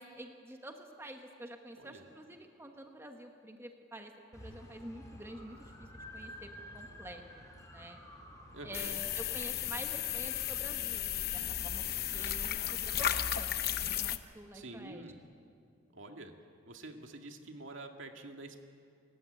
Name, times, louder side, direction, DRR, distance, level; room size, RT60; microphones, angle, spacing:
voice 1, 0.0-8.0 8.6-11.8 12.1-13.5 14.0-15.0, right 1 dB, 10° right, 4 dB, 1.3 m, -48 dB
voice 2, 1.8-2.1 8.5-9.0 14.5-15.2 15.9-16.3 16.7-18.6, right 2 dB, 75° right, 4 dB, 2.2 m, -47 dB
sound 1, 4.3-10.6, left 1 dB, 15° left, 4.0 m, -51 dB
sound 2, 8.7-14.2, left 10 dB, 50° left, 0.9 m, -34 dB
30.0 x 15.0 x 9.1 m, 2.4 s
head